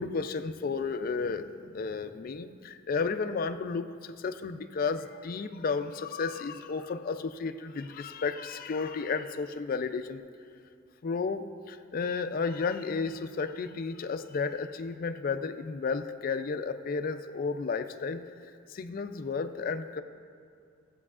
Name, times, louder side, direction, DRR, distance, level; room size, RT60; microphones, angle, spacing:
voice 1, 0.0-10.2 11.0-18.2 18.7-20.0, left 4 dB, 45° left, 9 dB, 0.4 m, -33 dB
15.5 x 7.5 x 2.4 m, 2.3 s
head